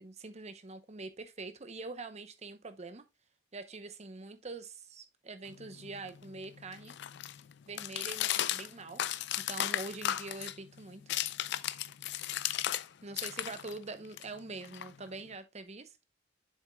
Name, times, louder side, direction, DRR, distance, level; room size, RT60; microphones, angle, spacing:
voice 1, 0.0-3.0 3.5-6.9 7.7-9.0 9.5-11.0 13.0-15.9, right 3 dB, 35° right, 0.8 m, -44 dB
sound 1, 5.5-12.9 13.1-15.3, left 12 dB, 60° left, 0.4 m, -36 dB
7.4 x 7.1 x 2.2 m
head